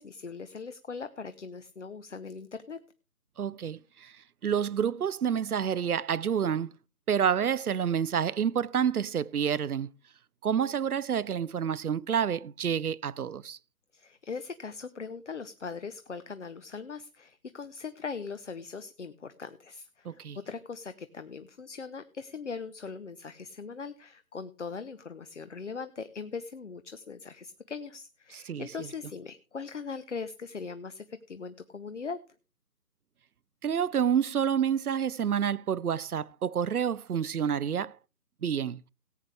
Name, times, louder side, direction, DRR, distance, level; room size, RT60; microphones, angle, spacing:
voice 1, 0.0-2.8 13.9-32.2, left 5 dB, 50° left, 0.8 m, -40 dB
voice 2, 3.4-6.7 7.1-9.9 10.4-13.6 20.0-20.4 28.5-28.9 33.6-38.0 38.4-38.8, right 8 dB, 65° right, 0.6 m, -28 dB
18.0 x 8.4 x 3.3 m
figure-of-eight pair, 155°, 48 cm